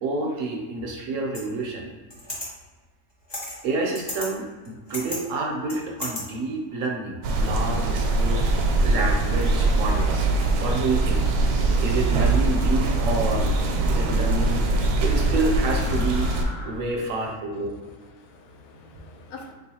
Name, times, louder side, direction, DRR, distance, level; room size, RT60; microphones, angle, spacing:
voice 1, 0.0-1.9 3.6-8.5 8.8-10.3 10.6-11.3 11.8-13.5 13.9-16.3 16.6-17.7, right 3 dB, 70° right, 1 dB, 0.8 m, -28 dB
sound 1, 1.3-1.4 2.1-2.5 3.3-3.6 3.9-4.3 4.6-5.2 5.7-6.2, left 1 dB, 25° left, 0.6 m, -33 dB
sound 2, 5.4-6.0 6.7-7.0 7.8-8.3 9.2-9.6 10.0-10.6 11.0-11.4 12.4-12.8 13.2-14.1 15.0-16.7, left 2 dB, 45° left, 1.2 m, -47 dB
sound 3, 7.2-16.4, right 2 dB, 90° right, 1.1 m, -22 dB
voice 2, 17.2-19.5, left 3 dB, 80° left, 3 dB, 1.1 m, -47 dB
3.7 x 3.0 x 2.7 m, 1.4 s
omnidirectional pair, 1.6 m